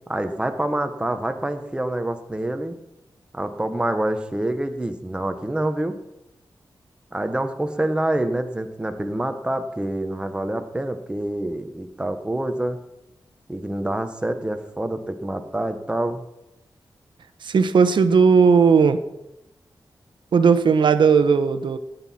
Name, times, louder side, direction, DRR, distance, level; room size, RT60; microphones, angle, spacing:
voice 1, 0.1-2.7 3.3-5.9 7.1-12.8 13.5-16.2, right 1 dB, 10° right, 8 dB, 0.9 m, -26 dB
voice 2, 17.4-19.0 20.3-21.8, right 5 dB, 70° right, 10 dB, 0.9 m, -16 dB
17.5 x 9.2 x 4.2 m, 0.91 s
wide cardioid pair, 165°, 8 cm